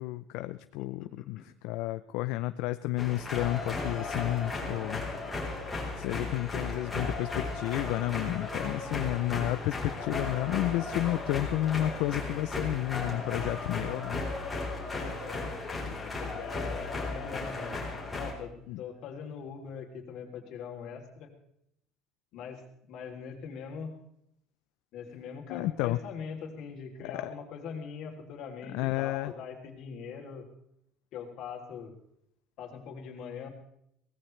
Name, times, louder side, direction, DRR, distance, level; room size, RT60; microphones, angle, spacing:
voice 1, 0.0-5.0 5.9-14.2 18.7-18.8 25.5-26.0 27.0-27.3 28.7-29.3, left 16 dB, 65° left, 11 dB, 0.5 m, -31 dB
sound 1, 3.0-18.3, left 3 dB, 5° left, 4.0 m, -35 dB
voice 2, 14.9-17.8 18.1-21.3 22.3-23.9 24.9-30.5 31.1-31.9 32.6-33.5, left 6 dB, 50° left, 2 dB, 3.2 m, -42 dB
23.0 x 18.0 x 3.3 m, 0.75 s
cardioid pair, 170°, 0 cm